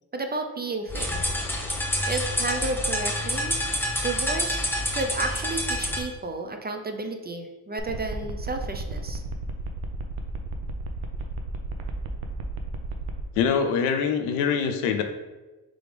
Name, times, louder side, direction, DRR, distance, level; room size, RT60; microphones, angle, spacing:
voice 1, 0.1-1.2 2.1-3.6 4.0-9.2, right 3 dB, 20° right, 5 dB, 0.4 m, -32 dB
sound 1, 0.9-6.1, left 1 dB, 5° left, 0.7 m, -27 dB
sound 2, 7.8-13.2, right 3 dB, 75° right, 0.7 m, -33 dB
voice 2, 13.4-15.0, left 6 dB, 85° left, 7 dB, 0.6 m, -24 dB
3.7 x 3.4 x 3.3 m, 1.2 s
supercardioid pair, 55°, 49 cm